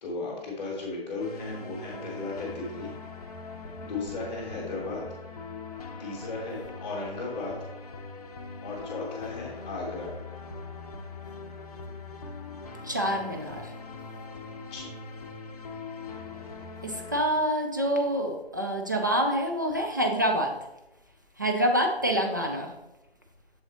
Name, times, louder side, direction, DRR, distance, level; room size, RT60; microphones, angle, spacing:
voice 1, 0.0-2.9 3.8-5.0 6.0-7.5 8.6-10.1 14.6-14.9, left 3 dB, 10° left, -3 dB, 1.0 m, -35 dB
sound 1, 1.2-17.2, left 4 dB, 40° left, 0.7 m, -41 dB
voice 2, 12.8-13.7 16.8-20.6 21.4-22.7, equal, 20° right, 2 dB, 0.4 m, -26 dB
7.0 x 3.9 x 4.1 m, 0.93 s
figure-of-eight pair, 155°, 31 cm